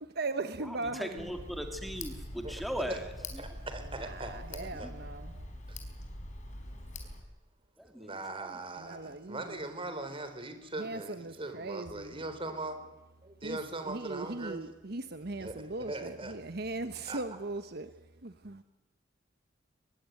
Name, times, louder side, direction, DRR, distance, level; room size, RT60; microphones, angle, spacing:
voice 1, 0.0-1.1 4.0-5.5 8.8-9.6 10.8-12.2 13.4-17.9 18.2-18.6, right 3 dB, 60° right, 1.1 m, -39 dB
voice 2, 0.6-3.5 4.2-4.3 4.7-4.9 7.8-8.6, equal, ahead, 2.2 m, -39 dB
Tick, 1.2-7.2, left 1 dB, 40° left, 4.7 m, -43 dB
voice 3, 3.4-4.9 5.7-5.8 7.9-12.8 13.4-14.6 15.4-15.6 15.9-16.4 17.1-17.2, right 2 dB, 30° right, 3.8 m, -40 dB
23.0 x 21.5 x 9.2 m
head